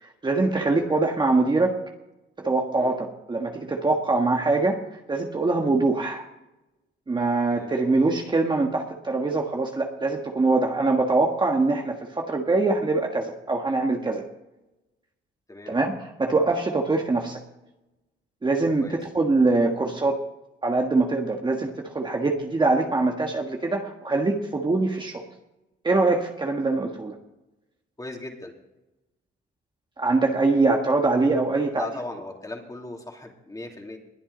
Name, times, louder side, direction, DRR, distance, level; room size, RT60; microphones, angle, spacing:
voice 1, 0.0-1.7 2.4-4.8 5.1-6.2 7.1-14.2 15.7-17.4 18.4-20.2 20.6-25.3 25.8-27.1 30.0-31.9, right 3 dB, 25° right, 2 dB, 1.5 m, -23 dB
voice 2, 28.0-28.5 31.7-34.0, left 2 dB, 15° left, 1 dB, 2.9 m, -38 dB
21.0 x 8.7 x 4.0 m, 0.95 s
cardioid pair, 90°, 20 cm